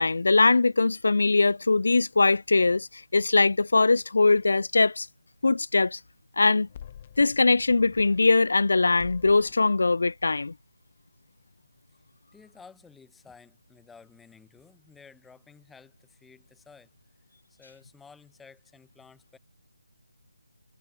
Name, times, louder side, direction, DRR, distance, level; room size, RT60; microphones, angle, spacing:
voice 1, 0.0-5.1 5.4-6.0 6.4-6.7 7.2-10.5, left 3 dB, 65° left, 0.4 m, -21 dB
sound 1, 6.5-8.7 9.0-9.7, left 9 dB, 25° left, 1.4 m, -46 dB
voice 2, 12.3-16.9 17.5-19.4, left 5 dB, 5° left, 4.6 m, -53 dB
figure-of-eight pair, 165°, 0 cm